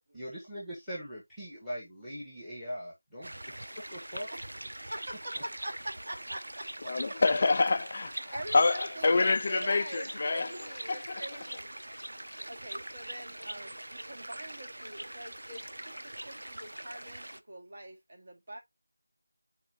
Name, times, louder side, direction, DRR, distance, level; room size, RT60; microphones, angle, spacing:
voice 1, 0.1-4.3, equal, ahead, 1.4 m, -41 dB
sound 1, 3.2-17.4, right 1 dB, 75° right, 0.7 m, -42 dB
voice 2, 4.7-6.9 8.3-11.8 12.5-15.9 16.2-18.6, right 1 dB, 35° right, 1.8 m, -43 dB
voice 3, 6.8-11.4, left 3 dB, 25° left, 0.4 m, -27 dB
8.2 x 4.4 x 2.9 m
figure-of-eight pair, 175°, 0 cm